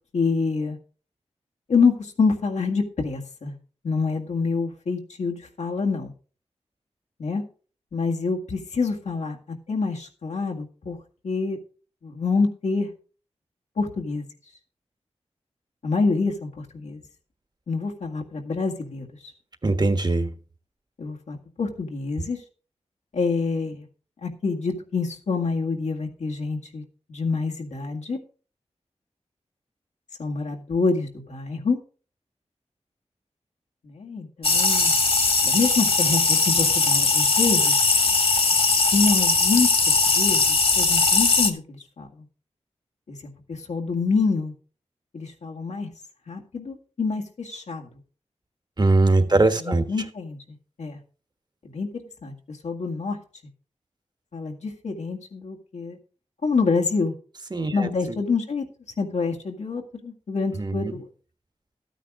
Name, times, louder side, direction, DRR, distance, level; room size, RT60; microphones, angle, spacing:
voice 1, 0.1-0.8 1.7-3.6 3.8-6.1 7.2-7.4 7.9-11.0 11.2-11.6 12.0-12.9 13.8-14.3 15.8-17.0 17.7-19.1 21.0-22.4 23.1-23.9 24.2-26.8 27.1-28.2 30.2-31.8 33.8-34.9 35.4-37.9 38.9-42.3 43.1-44.5 45.1-45.9 46.3-47.9 49.3-51.0 51.6-51.9 52.2-53.2 54.3-56.0 56.4-57.1 57.7-58.7 59.0-61.1, left 4 dB, 85° left, 1 dB, 1.9 m, -26 dB
voice 2, 19.6-20.3 48.8-49.8 57.5-57.9 60.6-61.0, right 2 dB, 35° right, 9 dB, 1.4 m, -21 dB
sound 1, 34.4-41.5, left 3 dB, 55° left, 1.6 m, -20 dB
13.0 x 9.1 x 3.7 m, 0.38 s
wide cardioid pair, 65°, 12 cm